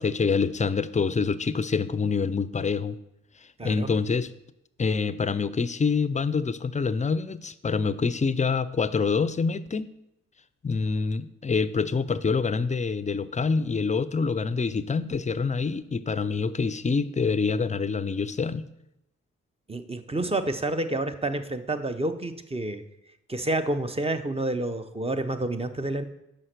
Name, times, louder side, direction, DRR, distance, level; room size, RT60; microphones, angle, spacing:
voice 1, 0.0-3.0 3.6-4.3 4.8-9.9 10.6-18.7, left 5 dB, 25° left, 15 dB, 0.5 m, -26 dB
voice 2, 19.7-22.8 23.3-26.0, right 2 dB, 20° right, 9 dB, 0.7 m, -29 dB
5.6 x 5.2 x 6.6 m, 0.85 s
supercardioid pair, 50°, 32 cm